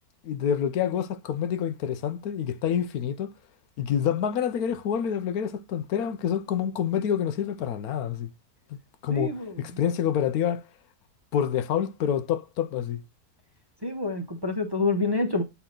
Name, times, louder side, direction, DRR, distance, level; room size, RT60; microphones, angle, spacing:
voice 1, 0.2-3.3 3.8-8.3 8.7-8.8 9.0-10.7 11.3-13.0, left 9 dB, 75° left, 1.2 m, -27 dB
voice 2, 9.1-9.5 13.8-15.4, left 3 dB, 20° right, 0.8 m, -27 dB
8.1 x 4.1 x 3.7 m
omnidirectional pair, 1.6 m